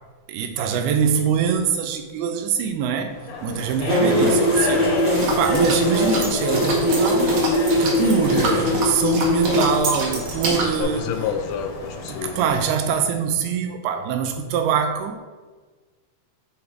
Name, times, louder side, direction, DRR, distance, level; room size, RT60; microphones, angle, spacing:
voice 1, 0.3-11.0 12.1-15.2, right 7 dB, 90° right, 5 dB, 2.3 m, -24 dB
sound 1, 3.0-12.6, left 3 dB, 70° left, 1.9 m, -30 dB
sound 2, 3.9-9.6, equal, 15° right, 0.4 m, -21 dB
voice 2, 4.0-4.4 9.5-9.6 10.8-12.4, left 7 dB, 85° left, 7 dB, 2.8 m, -28 dB
sound 3, 5.1-10.8, right 3 dB, 65° right, 1.9 m, -28 dB
10.0 x 3.6 x 4.6 m, 1.4 s
omnidirectional pair, 5.1 m